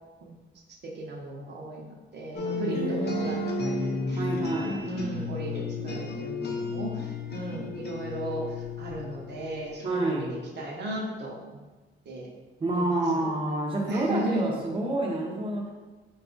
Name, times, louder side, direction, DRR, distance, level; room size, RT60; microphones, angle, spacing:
voice 1, 0.8-10.3 10.6-11.6 12.1-12.3 12.7-13.3 13.9-14.5, right 1 dB, 55° right, -1 dB, 0.8 m, -36 dB
sound 1, 2.4-9.9, left 4 dB, 55° left, 0.6 m, -33 dB
voice 2, 2.7-4.9 9.8-10.4 12.6-15.7, right 2 dB, 25° right, -2 dB, 0.7 m, -29 dB
4.0 x 2.4 x 3.8 m, 1.2 s
cardioid pair, 115°, 20 cm